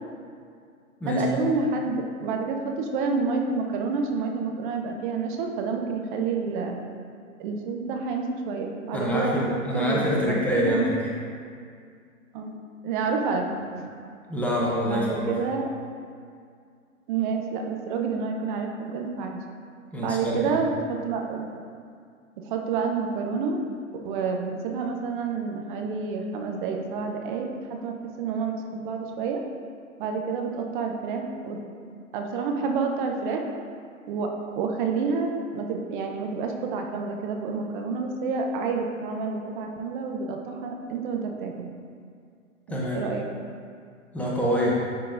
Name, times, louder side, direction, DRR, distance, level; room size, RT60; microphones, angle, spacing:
voice 1, 1.1-6.8 7.4-10.9 12.3-12.6 12.8-13.8 14.8-15.7 17.1-19.4 20.0-21.5 22.4-23.6 23.9-29.4 30.0-31.6 32.1-33.4 34.1-34.3 34.5-41.7 42.7-43.3, right 4 dB, 35° right, 3 dB, 0.7 m, -29 dB
voice 2, 8.9-11.0 14.3-15.4 19.9-20.6 42.7-43.0 44.1-44.8, equal, 5° left, -5 dB, 0.6 m, -25 dB
10.0 x 3.8 x 2.5 m, 2.2 s
hypercardioid pair, 125°, 41 cm